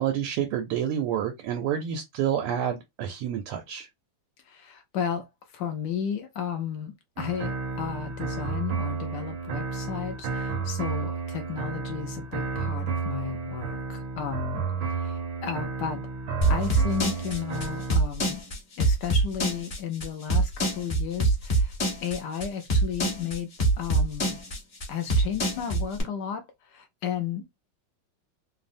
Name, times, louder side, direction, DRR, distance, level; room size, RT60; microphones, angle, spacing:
voice 1, 0.0-3.9, right 9 dB, 85° right, 1.5 m, -28 dB
voice 2, 4.4-14.7 15.0-16.0 16.5-18.4 18.8-23.5 23.8-24.4 24.9-27.5, left 8 dB, 80° left, 0.9 m, -33 dB
sound 1, 7.2-18.0, right 5 dB, 70° right, 1.2 m, -32 dB
sound 2, 16.4-26.0, right 2 dB, 45° left, 0.7 m, -24 dB
3.6 x 2.0 x 2.5 m
omnidirectional pair, 2.4 m